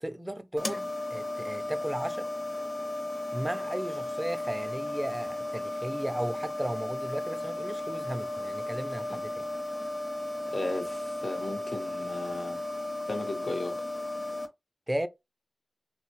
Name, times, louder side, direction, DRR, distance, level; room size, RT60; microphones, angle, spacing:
voice 1, 0.0-2.3 3.3-9.5 14.9-15.1, right 1 dB, 20° right, 0.4 m, -35 dB
sound 1, 0.6-14.5, left 2 dB, 40° left, 0.7 m, -35 dB
voice 2, 10.5-12.6 13.1-13.8, left 2 dB, 70° left, 0.8 m, -35 dB
3.1 x 2.1 x 2.9 m
wide cardioid pair, 55°, 0 cm